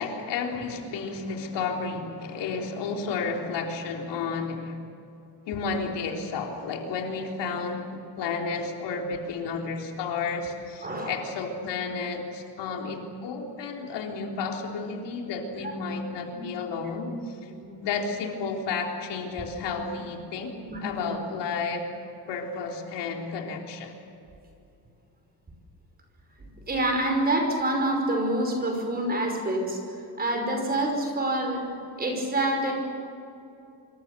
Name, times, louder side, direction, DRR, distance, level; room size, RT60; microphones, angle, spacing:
voice 1, 0.0-4.8 5.5-17.5 17.8-21.9 22.3-23.9, left 4 dB, 75° left, 1 dB, 3.8 m, -32 dB
voice 2, 10.8-11.2 16.3-16.4 17.6-17.9 20.7-21.1 26.7-29.8 30.2-31.6 32.0-32.7, right 1 dB, 20° right, 2 dB, 5.5 m, -27 dB
26.5 x 24.5 x 6.9 m, 2.6 s
cardioid pair, 165°, 42 cm